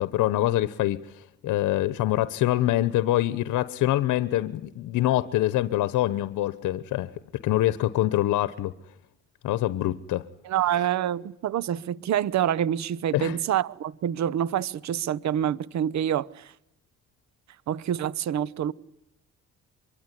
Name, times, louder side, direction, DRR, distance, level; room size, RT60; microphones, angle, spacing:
voice 1, 0.0-7.1 7.4-8.7 9.4-10.3 10.8-10.9 13.1-13.4, left 14 dB, 85° left, 1.0 m, -25 dB
voice 2, 10.4-16.5 17.7-18.7, right 10 dB, 65° right, 1.0 m, -27 dB
24.0 x 23.5 x 9.9 m
cardioid pair, 90°, 30 cm